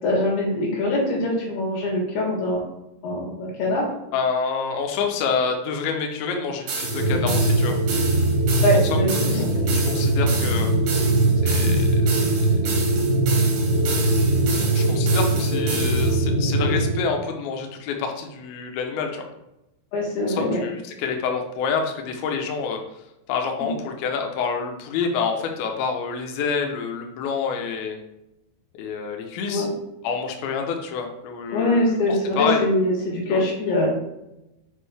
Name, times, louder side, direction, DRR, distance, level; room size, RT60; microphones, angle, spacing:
voice 1, 0.0-2.6 3.0-3.8 8.6-9.5 19.9-20.6 23.6-23.7 29.5-29.7 31.5-33.9, left 1 dB, 65° left, -3 dB, 3.8 m, -23 dB
voice 2, 4.1-7.8 8.9-10.7 11.4-12.4 14.6-19.2 20.3-22.8 23.3-28.0 28.7-29.7 30.0-31.8 32.1-32.6 33.3-33.4, left 5 dB, 85° left, 3 dB, 2.1 m, -28 dB
sound 1, 6.7-16.2, right 4 dB, 65° right, 3.1 m, -32 dB
sound 2, 6.8-17.0, right 2 dB, 50° left, 1.5 m, -21 dB
7.4 x 5.2 x 3.4 m, 0.90 s
omnidirectional pair, 5.4 m